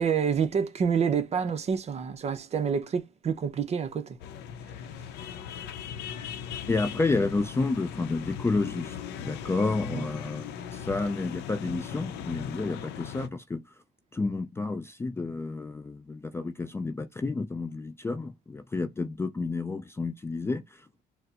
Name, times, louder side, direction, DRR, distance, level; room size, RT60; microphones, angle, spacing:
voice 1, 0.0-4.2 9.9-10.1, right 6 dB, 40° right, 0.6 m, -28 dB
sound 1, 4.2-13.3, left 8 dB, 85° left, 0.6 m, -39 dB
voice 2, 6.7-13.6 14.1-20.9, left 3 dB, 15° left, 0.4 m, -30 dB
4.1 x 2.0 x 2.4 m
cardioid pair, 110°, 17 cm